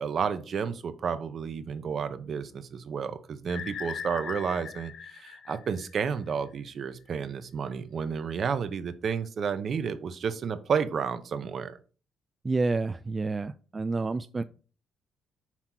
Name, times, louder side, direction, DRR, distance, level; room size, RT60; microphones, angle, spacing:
voice 1, 0.0-11.8, right 6 dB, 55° right, 11 dB, 0.8 m, -31 dB
sound 1, 3.5-6.3, left 7 dB, 65° left, 0.6 m, -40 dB
voice 2, 12.4-14.4, right 3 dB, 30° right, 10 dB, 0.3 m, -29 dB
5.8 x 4.3 x 4.5 m, 0.37 s
cardioid pair, 90°, 0 cm